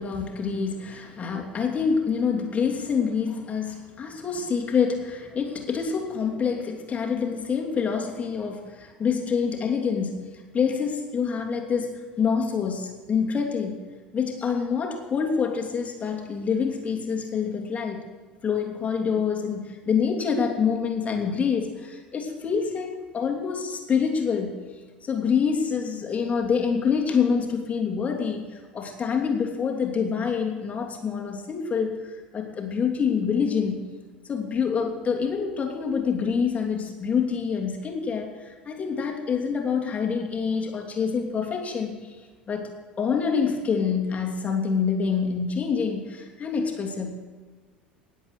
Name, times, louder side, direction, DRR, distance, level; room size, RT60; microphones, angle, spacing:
voice 1, 0.0-13.8 14.1-18.1 18.4-22.9 23.1-24.7 25.0-32.0 32.3-33.8 34.2-42.2 42.5-42.7 43.0-47.1, left 6 dB, 25° left, 1 dB, 2.9 m, -26 dB
19.5 x 8.3 x 6.7 m, 1.4 s
figure-of-eight pair, 70°, 5 cm